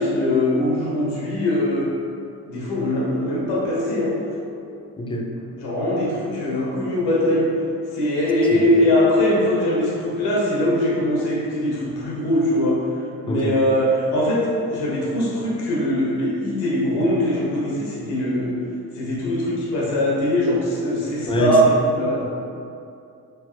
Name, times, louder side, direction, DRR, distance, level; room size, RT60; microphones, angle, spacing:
voice 1, 0.0-1.9 2.5-4.1 5.6-7.5 7.9-12.8 13.2-18.6 18.9-22.2, left 1 dB, 80° left, -5 dB, 0.9 m, -21 dB
voice 2, 5.0-5.3 8.5-8.7 13.3-13.5 21.3-21.6, equal, 15° left, 0 dB, 0.4 m, -24 dB
3.3 x 2.7 x 2.4 m, 2.5 s
hypercardioid pair, 50°, 39 cm